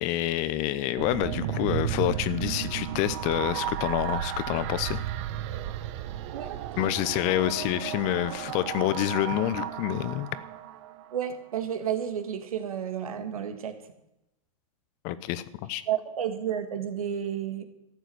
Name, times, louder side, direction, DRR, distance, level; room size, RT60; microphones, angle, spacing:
voice 1, 0.0-5.0 6.8-10.3 15.0-15.8, left 14 dB, 40° left, 16 dB, 0.9 m, -28 dB
sound 1, 1.0-11.3, right 11 dB, 55° right, 1.1 m, -34 dB
voice 2, 11.1-13.8 15.9-17.6, right 9 dB, 75° right, 7 dB, 2.0 m, -31 dB
13.5 x 8.1 x 7.8 m, 0.85 s
hypercardioid pair, 115°, 18 cm